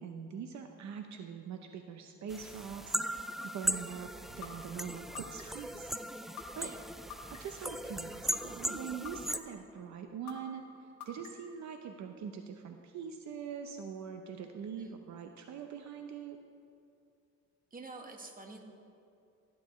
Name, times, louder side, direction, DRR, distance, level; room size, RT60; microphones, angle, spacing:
voice 1, 0.0-6.0 6.3-6.7 7.3-16.4, right 7 dB, 65° right, 5 dB, 0.7 m, -43 dB
sound 1, 2.3-9.4, equal, ahead, 0.4 m, -38 dB
sound 2, 4.4-4.5 5.1-5.7 6.4-6.5 7.1-7.6 8.3-8.4 9.1-9.6 10.3-10.4 11.0-11.5, left 10 dB, 75° left, 1.4 m, -45 dB
voice 2, 17.7-18.6, right 3 dB, 30° right, 3 dB, 1.5 m, -48 dB
16.5 x 9.6 x 3.1 m, 2.5 s
cardioid pair, 90°, 30 cm